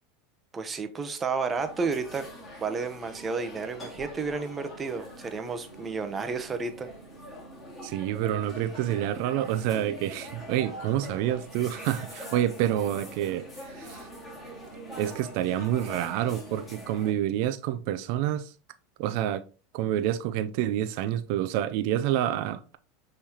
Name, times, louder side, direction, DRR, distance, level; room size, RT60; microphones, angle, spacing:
voice 1, 0.5-2.3 2.6-6.9, right 4 dB, 25° right, 0.7 m, -31 dB
sound 1, 1.5-17.1, equal, 15° left, 2.1 m, -43 dB
voice 2, 7.8-14.1 15.0-18.5 19.0-19.4 19.7-22.8, right 12 dB, 65° right, 0.4 m, -28 dB
5.5 x 3.2 x 2.8 m
supercardioid pair, 115°, 0 cm